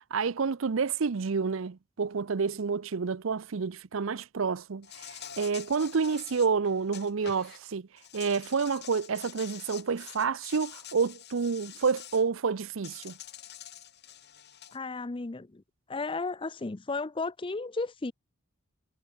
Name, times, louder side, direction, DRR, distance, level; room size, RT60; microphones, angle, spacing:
voice 1, 0.0-7.9 8.1-13.1, right 5 dB, 70° right, 0.6 m, -29 dB
Insect, 4.8-7.6 8.0-12.2 12.8-14.8, left 10 dB, 50° left, 7.4 m, -47 dB
voice 2, 14.7-15.6 15.9-18.1, left 3 dB, 25° left, 0.5 m, -34 dB
head